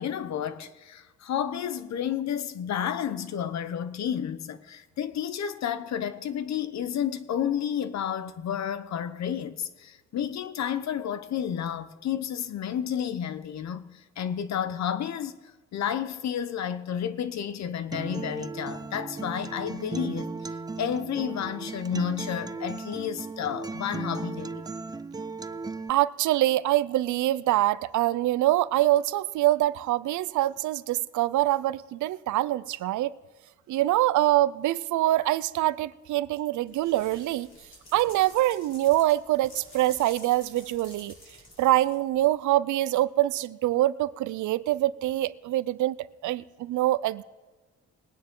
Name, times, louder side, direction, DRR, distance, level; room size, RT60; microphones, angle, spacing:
voice 1, 0.0-15.4 15.7-24.6, left 9 dB, 65° left, 1.0 m, -31 dB
Acoustic guitar, 17.9-25.9, right 4 dB, 15° right, 0.4 m, -36 dB
voice 2, 25.9-33.1 33.7-37.5 37.9-41.1 41.6-46.0 46.2-47.2, right 15 dB, 75° right, 0.5 m, -24 dB
sound 1, 36.7-42.2, left 1 dB, 40° left, 4.9 m, -51 dB
21.0 x 9.5 x 3.8 m
cardioid pair, 90°, 30 cm